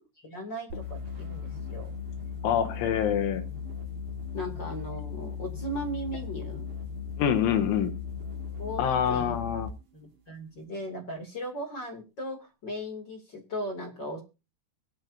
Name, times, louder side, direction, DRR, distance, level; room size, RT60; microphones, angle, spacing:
voice 1, 0.2-1.9 4.3-6.7 8.6-8.8 9.1-9.3 9.9-14.2, equal, 30° left, 2 dB, 2.4 m, -37 dB
sound 1, 0.7-9.8, left 7 dB, 45° right, 4.2 m, -37 dB
voice 2, 2.4-3.4 7.2-7.9 8.8-9.7, left 8 dB, 75° left, 7 dB, 3.4 m, -26 dB
24.0 x 8.9 x 2.7 m, 0.29 s
omnidirectional pair, 5.8 m